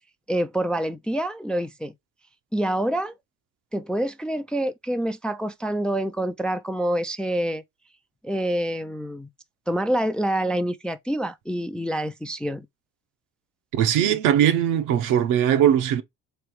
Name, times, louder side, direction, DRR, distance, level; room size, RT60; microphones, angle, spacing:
voice 1, 0.3-1.9 2.5-3.1 3.7-7.6 8.2-9.3 9.7-12.7, right 1 dB, 5° left, 0.3 m, -26 dB
voice 2, 13.7-16.0, right 10 dB, 75° right, 0.8 m, -20 dB
3.4 x 3.2 x 4.7 m
cardioid pair, 105°, 31 cm